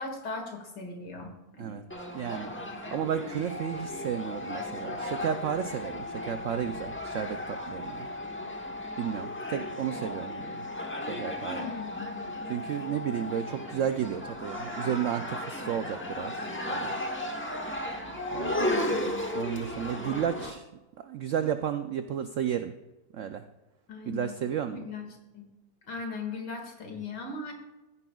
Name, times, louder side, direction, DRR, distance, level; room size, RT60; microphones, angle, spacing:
voice 1, 0.0-1.8 11.5-12.3 18.4-19.3 23.9-24.3 24.7-25.1 25.3-25.5 25.9-27.5, left 4 dB, 80° left, 2 dB, 2.6 m, -39 dB
sound 1, 1.9-20.5, left 1 dB, 10° left, 0.6 m, -36 dB
voice 2, 2.1-2.5 2.9-8.1 9.0-10.7 11.1-11.7 12.5-17.0 18.3-18.7 19.3-20.7 21.0-22.7 23.1-23.4 24.1-24.9, right 9 dB, 75° right, 9 dB, 0.7 m, -33 dB
sound 2, 3.5-13.5, left 3 dB, 5° right, 3.1 m, -40 dB
14.5 x 9.9 x 2.3 m, 1.1 s
omnidirectional pair, 1.8 m